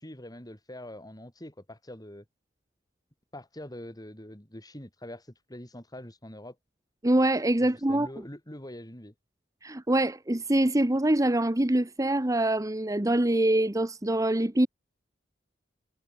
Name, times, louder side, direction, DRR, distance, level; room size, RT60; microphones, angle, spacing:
voice 1, 0.0-2.2 3.3-6.6 7.6-9.1, left 1 dB, 20° left, 4.9 m, -44 dB
voice 2, 7.0-8.1 9.6-14.7, right 1 dB, 20° right, 1.0 m, -24 dB
head